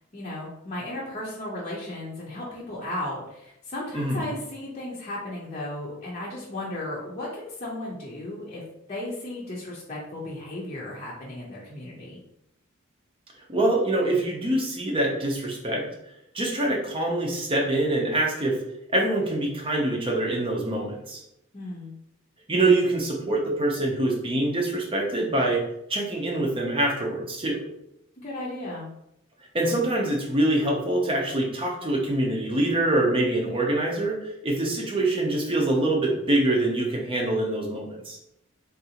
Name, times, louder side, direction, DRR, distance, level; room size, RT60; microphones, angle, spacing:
voice 1, 0.1-8.6 8.9-12.2 21.5-21.9 28.2-28.9, left 1 dB, 35° left, -6 dB, 0.7 m, -35 dB
voice 2, 13.5-15.9 16.3-18.6 18.9-21.2 22.5-25.6 25.9-27.6 29.5-34.2 34.4-38.2, right 2 dB, 25° right, -1 dB, 0.7 m, -24 dB
3.6 x 2.6 x 2.8 m, 0.80 s
head